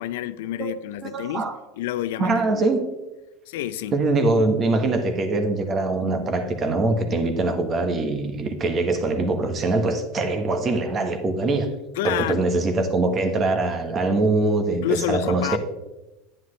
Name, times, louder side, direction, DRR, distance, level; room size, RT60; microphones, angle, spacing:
voice 1, 0.0-1.5 1.8-2.7 3.5-3.9 12.0-12.4 14.7-15.6, left 12 dB, 85° left, 0.5 m, -29 dB
voice 2, 1.0-1.5 2.2-2.9 3.9-11.7 12.0-15.6, right 2 dB, 30° right, 1.3 m, -23 dB
10.5 x 9.9 x 3.3 m
supercardioid pair, 140°, 0 cm